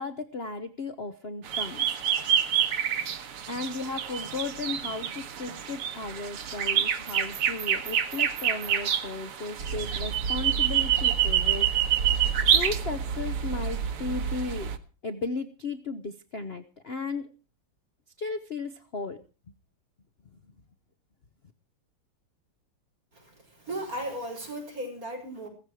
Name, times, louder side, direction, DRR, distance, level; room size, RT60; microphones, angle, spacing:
voice 1, 0.0-2.2 3.5-12.1 12.5-14.7 15.0-17.3 18.2-19.2, left 4 dB, 45° left, 11 dB, 0.8 m, -35 dB
sound 1, 1.4-14.8, right 9 dB, 90° right, 2.2 m, -27 dB
voice 2, 23.1-25.5, right 1 dB, 40° right, 1 dB, 6.2 m, -36 dB
16.5 x 14.5 x 4.8 m, 0.36 s
omnidirectional pair, 2.4 m